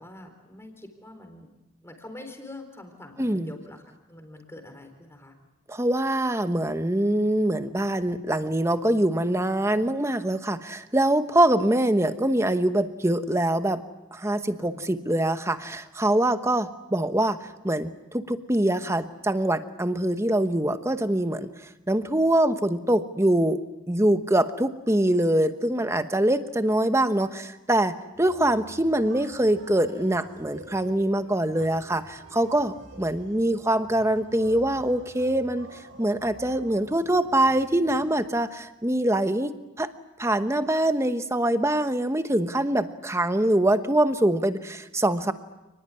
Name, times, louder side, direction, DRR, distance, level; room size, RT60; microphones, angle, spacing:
voice 1, 0.0-1.5 1.8-3.8 4.1-5.3 14.6-14.9, left 2 dB, 10° left, 6 dB, 4.0 m, -44 dB
voice 2, 3.2-3.5 5.7-13.8 14.1-23.6 23.9-39.9 40.2-45.3, right 1 dB, 15° right, 10 dB, 1.0 m, -24 dB
sound 1, 28.1-38.3, right 1 dB, 55° right, 7.2 m, -48 dB
29.5 x 20.0 x 9.7 m, 1.0 s
head